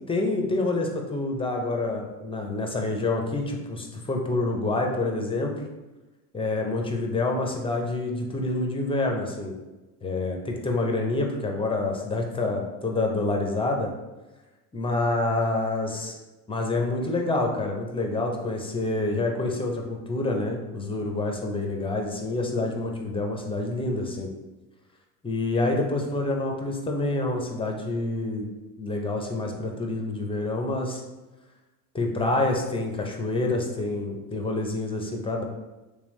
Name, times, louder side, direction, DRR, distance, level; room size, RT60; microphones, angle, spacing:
voice 1, 0.1-5.6 6.3-9.5 10.0-13.9 14.7-16.1 16.5-24.3 25.2-28.5 28.8-31.0 31.9-35.4, left 2 dB, 10° left, 1 dB, 0.4 m, -27 dB
3.4 x 3.3 x 3.1 m, 1.1 s
supercardioid pair, 105°, 48 cm